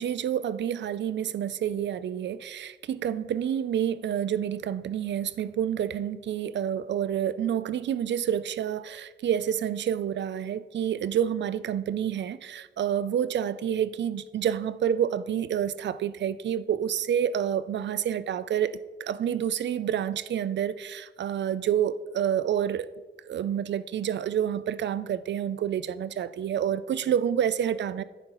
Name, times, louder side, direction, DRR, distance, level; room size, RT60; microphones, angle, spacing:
voice 1, 0.0-22.9 23.3-28.0, right 9 dB, 65° right, 16 dB, 0.4 m, -28 dB
10.5 x 9.2 x 3.0 m, 1.3 s
wide cardioid pair, 130°, 20 cm